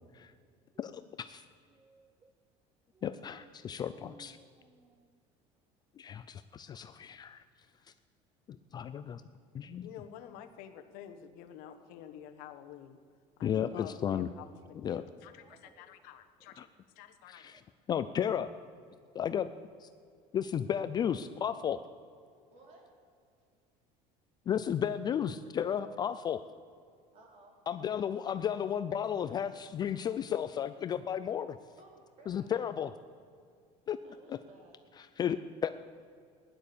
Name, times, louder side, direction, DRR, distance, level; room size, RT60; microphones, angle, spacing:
voice 1, 0.8-1.4 3.0-4.4 6.0-7.4 8.5-9.2 9.5-9.9 13.4-14.3 14.8-15.0 16.6-16.7 17.3-17.6 17.9-18.5 19.1-19.5 19.8-19.9 20.3-21.8 24.5-26.4 27.7-31.6 32.3-32.9 33.9-34.0 35.2-35.7, left 9 dB, 30° left, 12 dB, 0.4 m, -33 dB
voice 2, 1.7-2.3 2.9-5.2 15.4-16.0 17.5-17.6, right 4 dB, 20° right, 9 dB, 0.6 m, -61 dB
voice 3, 9.8-13.0 13.4-17.5, left 10 dB, 70° left, 7 dB, 1.3 m, -49 dB
voice 4, 22.5-22.9 27.1-27.5 31.8-32.5 34.0-34.9, right 2 dB, 45° right, 0 dB, 3.7 m, -58 dB
16.0 x 10.5 x 6.9 m, 2.2 s
cardioid pair, 150°, 15 cm